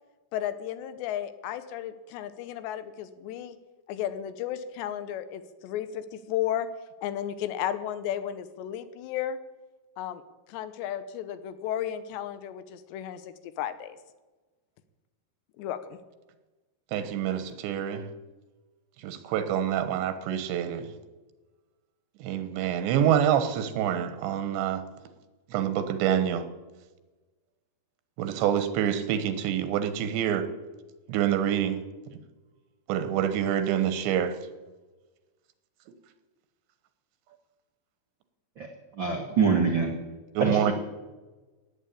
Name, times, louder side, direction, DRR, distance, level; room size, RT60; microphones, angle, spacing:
voice 1, 0.3-3.6 3.9-6.7 7.0-9.4 10.0-10.2 10.5-14.0 15.6-15.8, left 11 dB, 80° left, 12 dB, 3.1 m, -33 dB
voice 2, 16.9-18.1 19.0-20.9 22.2-24.8 25.5-26.5 28.2-30.5 31.1-31.8 32.9-34.4 40.3-40.7, right 9 dB, 90° right, 11 dB, 3.5 m, -26 dB
voice 3, 39.0-39.9 40.4-40.7, right 5 dB, 75° right, 2 dB, 1.0 m, -24 dB
17.0 x 9.5 x 8.5 m, 1.2 s
omnidirectional pair, 4.9 m